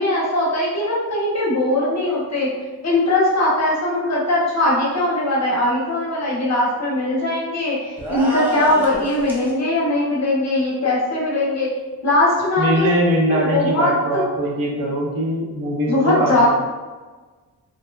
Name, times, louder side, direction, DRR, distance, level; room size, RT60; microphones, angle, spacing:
voice 1, 0.0-2.5 2.8-11.7 12.0-13.9 15.9-16.5, left 1 dB, 45° left, -5 dB, 0.7 m, -20 dB
sound 1, 8.0-9.5, right 1 dB, 5° right, 0.4 m, -27 dB
voice 2, 12.6-16.5, right 1 dB, 65° right, -2 dB, 0.6 m, -21 dB
2.6 x 2.1 x 2.2 m, 1.3 s
wide cardioid pair, 135°, 38 cm